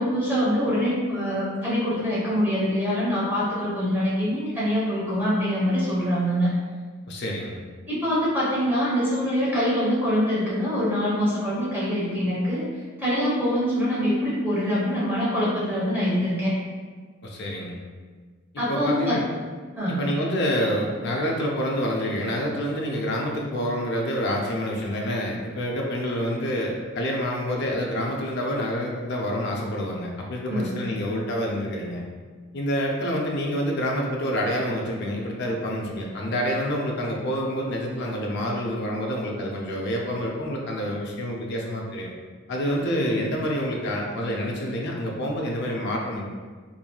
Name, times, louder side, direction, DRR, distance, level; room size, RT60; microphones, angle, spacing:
voice 1, 0.0-6.5 7.9-12.6 13.0-16.5 18.6-19.2 19.8-20.0 30.5-30.7, equal, 10° right, -9 dB, 1.0 m, -24 dB
voice 2, 7.1-7.6 17.2-17.8 18.7-19.2 19.9-32.0 32.5-42.1 42.5-46.3, equal, 55° left, -1 dB, 0.4 m, -27 dB
3.0 x 2.6 x 2.2 m, 1.5 s
head